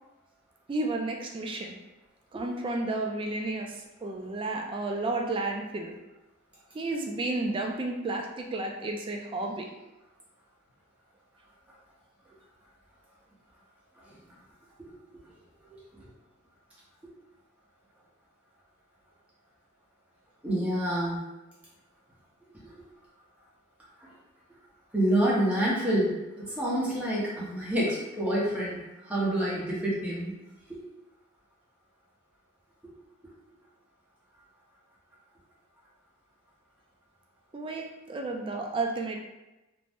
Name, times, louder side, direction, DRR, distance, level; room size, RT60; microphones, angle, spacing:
voice 1, 0.7-1.7 2.3-5.9 6.7-9.7 37.5-39.2, right 2 dB, 25° right, 1 dB, 0.3 m, -32 dB
voice 2, 20.4-21.2 24.0-24.1 24.9-30.3, right 1 dB, 5° right, -7 dB, 0.7 m, -28 dB
2.5 x 2.0 x 3.3 m, 1.0 s
head